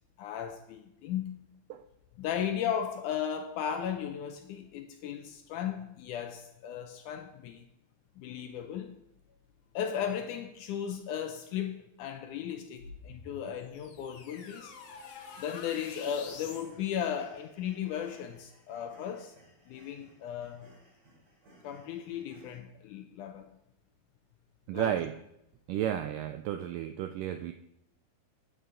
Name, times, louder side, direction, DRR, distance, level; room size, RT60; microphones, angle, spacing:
voice 1, 0.2-1.5 2.2-7.7 8.2-8.9 9.7-14.7 15.4-19.3 19.7-20.7 21.6-23.5 24.7-24.9, left 9 dB, 80° left, 1.8 m, -36 dB
sound 1, 12.8-16.7, left 5 dB, 65° left, 2.0 m, -47 dB
sound 2, 15.8-22.6, right 1 dB, 45° right, 4.1 m, -60 dB
voice 2, 24.7-25.1 25.7-27.5, right 11 dB, 80° right, 2.0 m, -32 dB
12.0 x 8.2 x 3.8 m
omnidirectional pair, 4.2 m